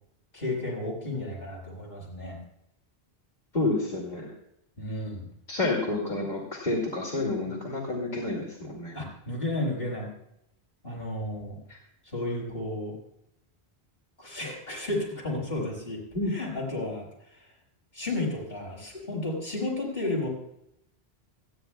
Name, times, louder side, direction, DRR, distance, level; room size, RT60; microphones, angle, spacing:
voice 1, 0.3-2.4 4.8-5.3 8.9-10.1 10.8-11.6 12.1-12.9 14.2-16.0 16.3-17.1 17.9-20.3, left 2 dB, 65° left, -3 dB, 5.4 m, -32 dB
voice 2, 3.5-4.3 5.5-8.9 11.7-11.8 16.1-16.3, left 2 dB, 45° left, -4 dB, 3.0 m, -29 dB
28.5 x 10.0 x 2.3 m, 0.79 s
omnidirectional pair, 1.1 m